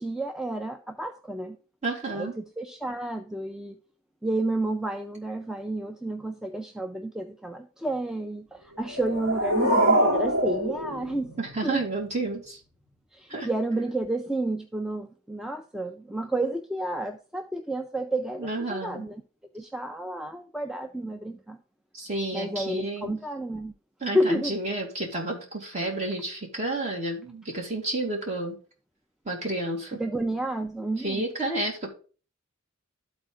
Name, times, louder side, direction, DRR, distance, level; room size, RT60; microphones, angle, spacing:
voice 1, 0.0-1.6 2.1-3.8 4.2-11.3 11.6-11.8 13.1-19.2 19.5-21.6 22.3-23.7 24.1-24.5 30.0-31.3, right 1 dB, ahead, 5 dB, 0.3 m, -30 dB
voice 2, 1.8-2.3 11.4-12.6 13.3-13.5 18.4-19.0 21.9-23.1 24.0-28.6 29.3-30.0 31.0-31.9, right 2 dB, 30° right, -1 dB, 2.3 m, -31 dB
sound 1, 8.8-11.8, right 1 dB, 70° right, 2.5 m, -25 dB
12.5 x 4.2 x 3.7 m, 0.37 s
head